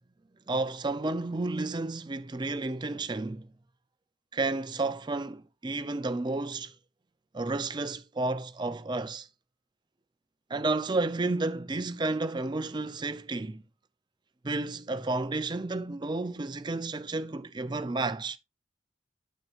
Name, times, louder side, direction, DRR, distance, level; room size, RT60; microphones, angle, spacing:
voice 1, 0.5-3.5 4.3-6.7 7.3-9.3 10.5-13.6 14.4-18.4, right 2 dB, 20° right, 0.4 m, -31 dB
9.3 x 7.5 x 2.4 m
head